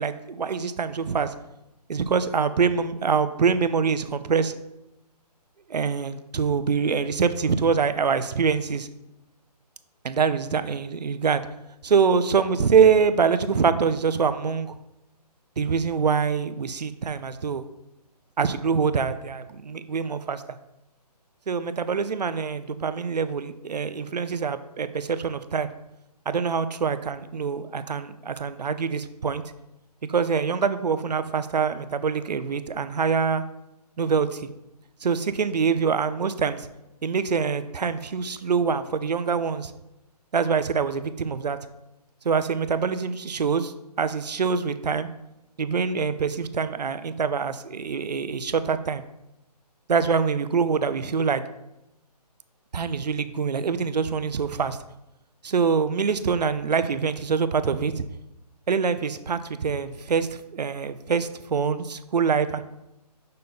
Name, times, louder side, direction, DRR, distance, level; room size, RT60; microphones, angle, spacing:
voice 1, 0.0-1.3 1.9-4.5 5.7-8.9 10.0-11.4 11.8-14.8 15.6-17.6 18.4-20.6 21.5-25.7 26.3-29.4 30.1-33.4 34.0-34.5 35.0-36.7 37.0-39.7 40.3-41.6 42.2-45.1 45.6-49.0 49.9-51.4 52.7-54.8 55.4-58.0 58.7-62.6, right 6 dB, 75° right, 12 dB, 0.6 m, -24 dB
6.8 x 5.3 x 4.1 m, 0.91 s
hypercardioid pair, 180°, 21 cm